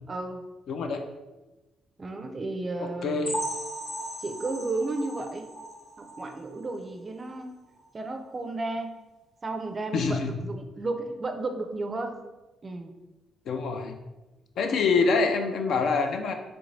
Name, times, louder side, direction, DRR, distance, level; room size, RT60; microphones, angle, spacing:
voice 1, 0.1-0.4 2.0-3.3 4.2-5.5 6.0-7.6 7.9-9.0 9.4-12.2 12.6-12.9, right 2 dB, 30° right, 6 dB, 0.4 m, -33 dB
voice 2, 0.7-1.0 2.8-3.3 9.9-10.3 13.5-14.0 14.6-16.3, left 4 dB, 70° left, 5 dB, 0.4 m, -25 dB
sound 1, 3.2-6.9 7.3-7.4 7.8-7.9 8.4-8.5, right 1 dB, 40° left, 0.7 m, -37 dB
3.3 x 2.5 x 3.1 m, 1.1 s
cardioid pair, 90°, 0 cm